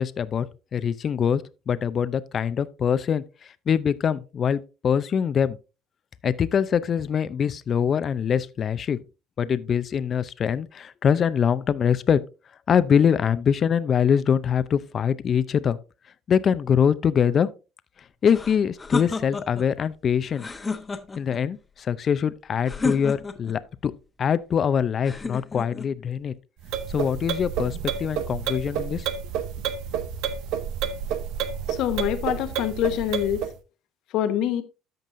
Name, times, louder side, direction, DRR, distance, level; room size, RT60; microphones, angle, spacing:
voice 1, 0.0-5.6 6.2-9.0 9.4-12.2 12.7-15.8 16.3-17.5 18.2-20.5 21.2-23.9 24.2-26.3 26.9-29.1, left 7 dB, 45° left, 0.5 m, -23 dB
sound 1, 18.3-19.7 20.3-21.4 22.7-23.6 25.0-25.9, left 3 dB, 25° left, 1.0 m, -31 dB
sound 2, 26.6-33.5, right 8 dB, 75° right, 0.8 m, -30 dB
voice 2, 31.7-33.4 34.1-34.6, left 11 dB, 70° left, 1.0 m, -25 dB
13.5 x 5.3 x 2.6 m
supercardioid pair, 80°, 0 cm